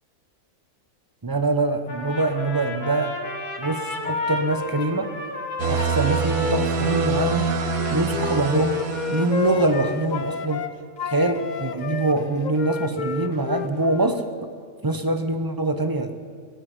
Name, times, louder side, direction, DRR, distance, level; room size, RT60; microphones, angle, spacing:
voice 1, 1.2-3.2 3.6-5.1 5.6-7.5 7.9-10.7 11.0-14.2 14.8-16.1, right 2 dB, 20° right, 8 dB, 0.6 m, -24 dB
Trumpet, 1.9-8.8, left 2 dB, 85° left, 2.3 m, -33 dB
sound 1, 5.6-10.0, right 5 dB, 70° right, 1.5 m, -26 dB
Wind instrument woodwind instrument, 7.7-10.7 11.0-14.3, left 6 dB, 70° left, 0.4 m, -31 dB
17.0 x 8.2 x 9.5 m, 2.2 s
omnidirectional pair, 1.6 m